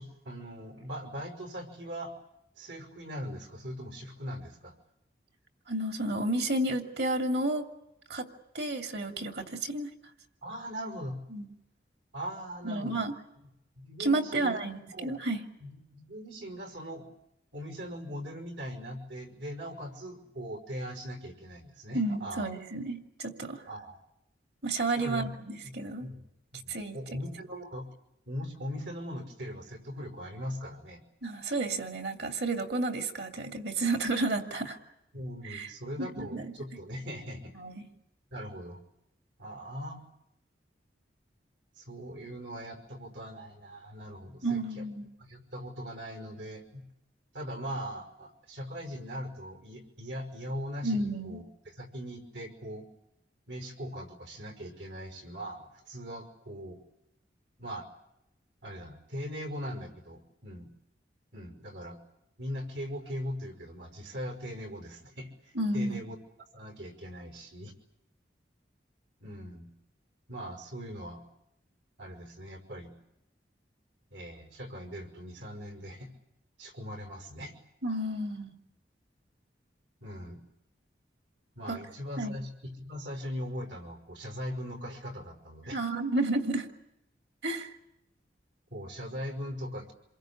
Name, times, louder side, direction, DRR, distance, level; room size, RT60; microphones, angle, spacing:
voice 1, 0.0-2.1 2.6-4.7 10.4-11.2 12.1-13.1 13.4-13.5 13.8-15.2 15.6-17.1 17.5-22.5 23.7-24.0 25.0-25.3 25.6-25.7 26.0-26.2 26.5-27.9 28.3-31.0 35.1-37.5 38.3-38.8 39.4-40.0 41.8-44.8 45.3-46.8 47.3-52.9 53.5-56.8 57.6-57.9 58.6-60.7 61.3-62.0 62.4-65.3 65.7-66.2 66.5-67.7 69.2-69.7 70.3-71.2 72.0-72.9 74.1-76.1 76.6-77.5 80.0-80.4 81.6-85.8 88.7-89.9, equal, 90° right, 6 dB, 5.6 m, -40 dB
voice 2, 5.7-7.7 8.1-8.3 8.5-9.9 11.3-11.5 12.6-13.2 14.0-15.4 21.9-23.6 24.6-26.1 26.7-27.0 31.2-34.8 35.5-35.7 36.0-36.5 37.6-37.9 44.4-45.1 50.8-51.4 65.5-66.1 77.8-78.5 81.7-81.8 82.2-82.3 85.7-86.7 87.4-87.7, right 2 dB, 70° right, 4 dB, 2.8 m, -31 dB
28.0 x 22.5 x 8.7 m, 0.83 s
head